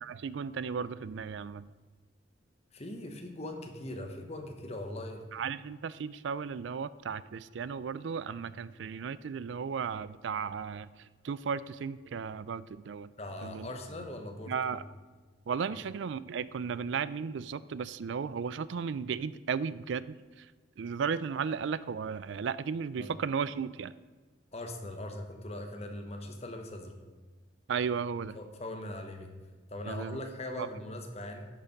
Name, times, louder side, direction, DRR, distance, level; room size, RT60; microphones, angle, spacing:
voice 1, 0.0-1.7 5.3-13.1 13.4-13.7 14.5-14.8 15.5-20.5 20.8-23.9 27.7-28.4 29.9-30.2 30.6-30.7, right 6 dB, 70° right, 17 dB, 0.4 m, -35 dB
voice 2, 2.7-5.2 13.2-14.8 15.7-15.8 23.0-23.1 24.5-27.0 28.3-29.3 29.7-31.4, left 1 dB, 35° left, 4 dB, 1.1 m, -40 dB
11.0 x 6.7 x 5.2 m, 1.4 s
head